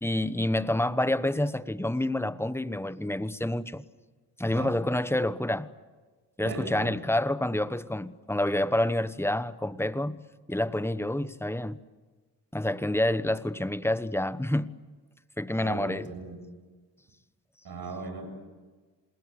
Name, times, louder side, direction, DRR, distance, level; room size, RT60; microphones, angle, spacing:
voice 1, 0.0-3.8 4.4-5.7 6.4-10.2 10.5-11.8 12.5-14.7 15.4-16.1, left 1 dB, 5° left, 1.1 m, -28 dB
voice 2, 6.4-7.0 15.6-16.4 17.6-18.3, right 3 dB, 55° right, 7.3 m, -37 dB
28.0 x 20.5 x 8.3 m
supercardioid pair, 55°, 43 cm